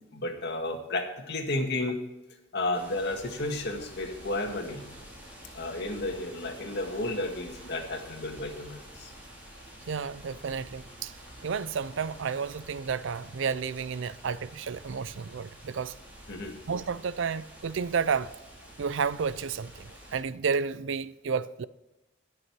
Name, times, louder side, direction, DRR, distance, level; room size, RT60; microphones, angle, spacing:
voice 1, 0.1-2.0 2.5-4.9 5.5-9.1 16.3-16.6, left 2 dB, 60° left, 1.9 m, -32 dB
sound 1, 2.7-20.2, equal, 10° right, 4.2 m, -49 dB
voice 2, 9.9-11.1 11.4-15.9 16.7-18.3 18.8-21.6, right 6 dB, 65° right, 0.5 m, -31 dB
19.5 x 6.8 x 4.7 m
head